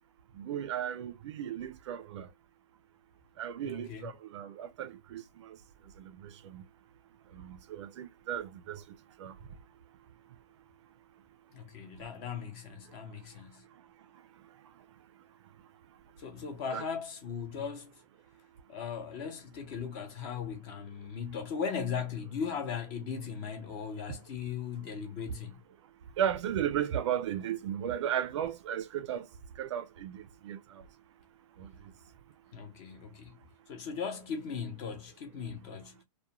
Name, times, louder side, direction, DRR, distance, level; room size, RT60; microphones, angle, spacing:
voice 1, 0.4-2.3 3.4-5.6 6.0-6.7 7.3-8.8 9.2-9.3 16.7-16.8 24.1-24.2 26.2-29.3 29.6-30.8 31.6-31.7, right 10 dB, 50° right, 0.4 m, -35 dB
voice 2, 3.6-4.1 11.5-13.6 16.2-17.9 18.7-25.6 32.5-33.4 33.7-36.0, left 6 dB, 30° left, 0.7 m, -38 dB
2.3 x 2.2 x 2.8 m
hypercardioid pair, 150°, 20 cm